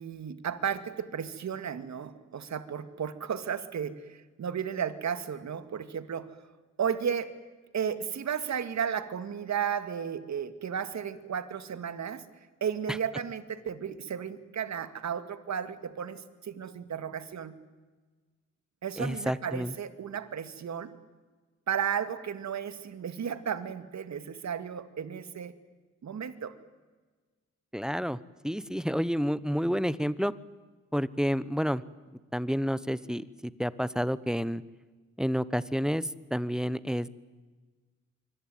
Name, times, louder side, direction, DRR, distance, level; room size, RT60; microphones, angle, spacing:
voice 1, 0.0-6.3 6.8-7.3 7.7-12.2 12.6-17.6 18.8-20.9 21.7-25.5 26.0-26.5, right 8 dB, 65° right, 11 dB, 2.2 m, -34 dB
voice 2, 19.0-19.7 27.7-28.2 28.4-30.3 30.9-31.8 32.3-34.6 35.2-37.1, equal, ahead, 17 dB, 1.1 m, -29 dB
25.5 x 25.0 x 9.3 m, 1.3 s
cardioid pair, 85°, 30 cm